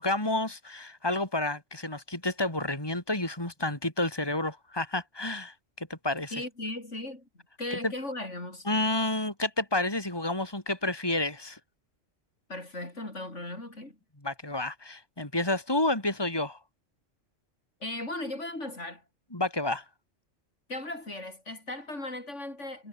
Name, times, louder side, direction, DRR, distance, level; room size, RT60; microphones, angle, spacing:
voice 1, 0.0-6.3 7.8-7.9 8.7-11.6 14.2-16.6 19.3-19.8, left 2 dB, 20° left, 4.0 m, -30 dB
voice 2, 6.3-8.7 12.5-14.0 17.8-19.0 20.7-22.9, left 2 dB, 65° left, 6.0 m, -37 dB
omnidirectional pair, 1.3 m